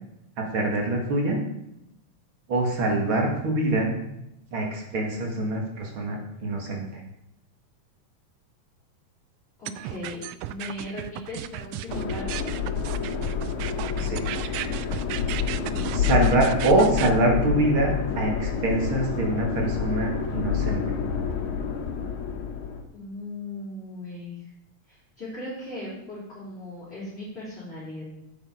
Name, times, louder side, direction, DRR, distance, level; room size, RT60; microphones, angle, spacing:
voice 1, 0.4-1.4 2.5-3.9 4.5-7.0 14.0-14.8 15.9-20.8, right 2 dB, 45° right, 1 dB, 2.5 m, -25 dB
voice 2, 9.6-12.5 22.9-24.4 24.9-28.0, left 1 dB, 20° left, -10 dB, 3.9 m, -38 dB
sound 1, 9.7-17.1, right 13 dB, 90° right, 1.4 m, -35 dB
sound 2, 11.9-22.8, left 7 dB, 75° left, 2.4 m, -28 dB
8.9 x 8.5 x 4.9 m, 0.83 s
omnidirectional pair, 3.4 m